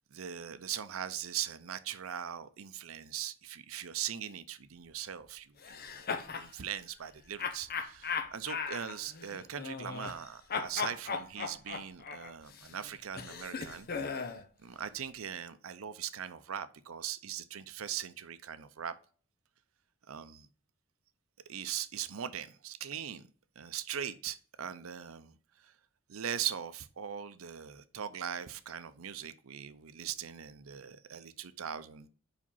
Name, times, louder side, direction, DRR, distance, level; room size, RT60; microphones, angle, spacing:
voice 1, 0.1-13.9 14.6-18.9 20.1-20.5 21.5-23.3 23.6-25.7 26.1-32.1, right 9 dB, 80° right, 0.6 m, -40 dB
sound 1, 5.6-6.5 7.4-10.2 10.5-14.4, left 5 dB, 50° left, 0.7 m, -38 dB
5.1 x 5.0 x 5.5 m
head